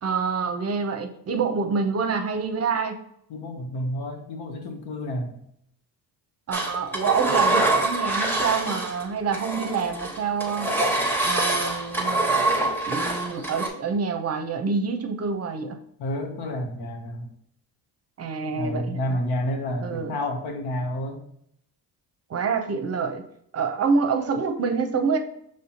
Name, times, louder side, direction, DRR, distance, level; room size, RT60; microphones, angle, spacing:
voice 1, 0.0-3.0 6.5-10.7 11.2-12.4 12.9-15.8 18.2-19.2 19.8-20.2 22.3-23.2 23.5-25.2, right 5 dB, 40° right, 6 dB, 0.6 m, -27 dB
voice 2, 3.3-5.3 16.0-17.3 18.4-21.2, left 1 dB, 85° left, 4 dB, 0.9 m, -30 dB
Engine, 6.5-9.0 9.3-13.7, right 2 dB, 5° left, 1.1 m, -25 dB
5.5 x 3.2 x 2.8 m, 0.72 s
cardioid pair, 85°, 39 cm